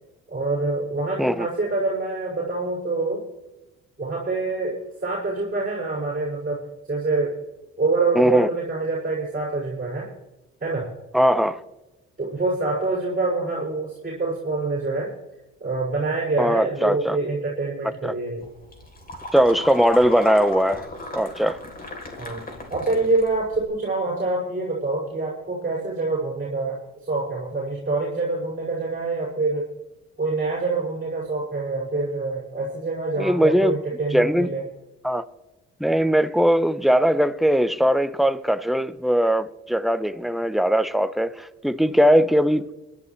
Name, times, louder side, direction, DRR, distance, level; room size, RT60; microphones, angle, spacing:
voice 1, 0.3-3.2 4.0-7.4 7.8-10.1 10.6-10.9 12.2-15.1 15.6-18.4 22.2-22.4 22.7-29.7 30.2-34.6, right 3 dB, 30° right, 5.6 m, -26 dB
voice 2, 8.1-8.5 11.1-11.6 16.4-17.2 18.0-18.1 19.3-20.9 21.1-21.6 33.2-33.8 34.1-34.5 35.0-35.2 35.8-42.7, equal, ahead, 0.8 m, -20 dB
sound 1, 18.4-23.7, left 2 dB, 30° left, 3.3 m, -37 dB
22.5 x 11.5 x 3.2 m
cardioid pair, 90°, 30 cm